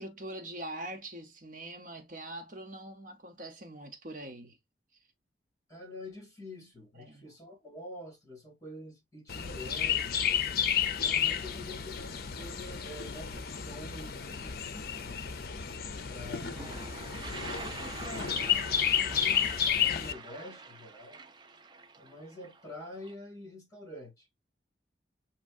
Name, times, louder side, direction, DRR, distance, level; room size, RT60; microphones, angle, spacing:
voice 1, 0.0-4.6 6.9-7.2 16.3-16.8, right 1 dB, 45° right, 0.9 m, -43 dB
voice 2, 5.7-10.3 10.9-15.3 16.1-16.8 17.3-21.2 22.0-24.3, left 1 dB, 15° left, 2.4 m, -47 dB
Chirp tweet, 9.3-20.1, left 8 dB, 55° left, 0.5 m, -31 dB
Toilet flush, 16.0-16.1 16.3-23.1, right 3 dB, 25° right, 0.4 m, -45 dB
7.2 x 3.0 x 2.5 m
head